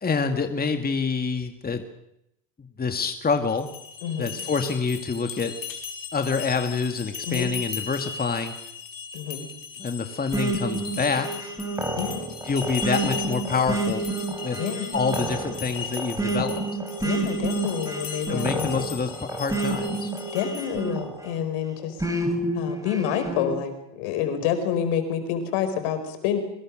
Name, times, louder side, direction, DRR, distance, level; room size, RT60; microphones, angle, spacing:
voice 1, 0.0-1.8 2.6-3.7 4.2-5.5 6.1-8.5 9.8-11.3 12.4-14.1 14.4-14.6 14.9-16.6 18.3-20.1, left 5 dB, 20° left, 6 dB, 2.1 m, -27 dB
sound 1, 3.5-20.9, left 6 dB, 40° left, 4.7 m, -37 dB
voice 2, 4.0-4.3 7.3-7.5 9.1-9.5 11.9-12.2 14.6-14.9 17.0-18.7 20.3-22.0 22.5-26.4, left 8 dB, 70° left, 8 dB, 5.1 m, -28 dB
sound 2, 10.3-21.4 22.0-23.5, right 2 dB, 5° right, 4.8 m, -29 dB
24.0 x 21.0 x 6.5 m, 0.82 s
supercardioid pair, 95°, 49 cm